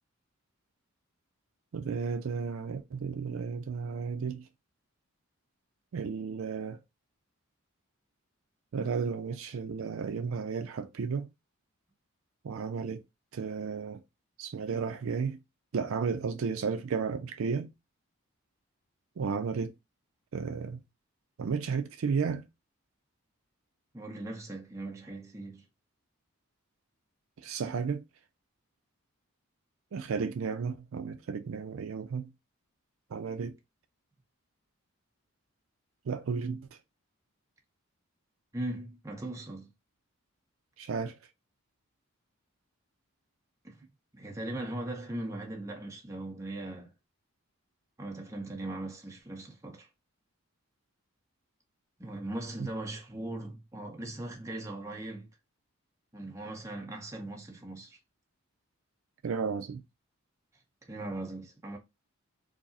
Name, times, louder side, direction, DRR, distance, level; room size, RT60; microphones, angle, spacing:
voice 1, 1.7-4.4 5.9-6.8 8.7-11.3 12.4-13.0 13.3-14.0 14.4-15.4 15.7-17.7 19.2-19.7 20.3-20.8 21.4-22.5 27.4-28.0 29.9-32.3 33.1-33.5 36.1-36.7 40.8-41.2 52.6-52.7 59.2-59.8, right 5 dB, 65° right, 0.4 m, -33 dB
voice 2, 23.9-25.6 38.5-39.7 43.6-43.9 44.1-46.9 48.0-49.9 52.0-55.3 56.1-58.0 60.8-61.8, right 1 dB, 15° right, 0.7 m, -39 dB
4.7 x 2.0 x 2.7 m
head